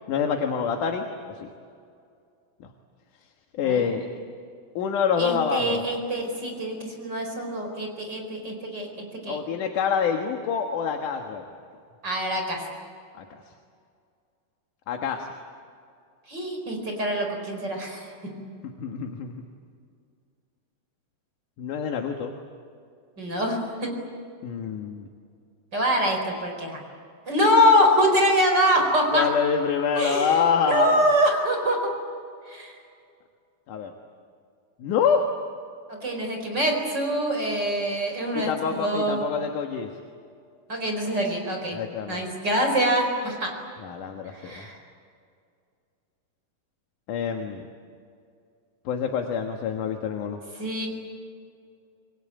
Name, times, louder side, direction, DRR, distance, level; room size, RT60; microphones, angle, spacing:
voice 1, 0.1-1.1 1.4-1.5 3.6-4.1 4.8-5.8 9.3-11.4 13.2-13.3 14.9-15.3 18.8-19.3 21.6-22.3 24.4-25.1 29.1-31.0 33.7-33.9 34.8-35.3 38.3-39.9 41.7-42.2 43.8-44.7 47.1-47.6 48.9-50.4, left 7 dB, 65° left, 3 dB, 2.8 m, -26 dB
voice 2, 5.2-9.4 12.0-12.6 16.3-18.1 23.2-23.9 25.7-26.8 27.3-29.3 30.0-31.8 32.5-32.8 36.0-39.2 40.7-41.8 42.1-43.5 44.3-44.8 50.6-50.9, equal, 30° right, 2 dB, 5.0 m, -24 dB
27.0 x 22.5 x 9.0 m, 2.3 s
omnidirectional pair, 4.3 m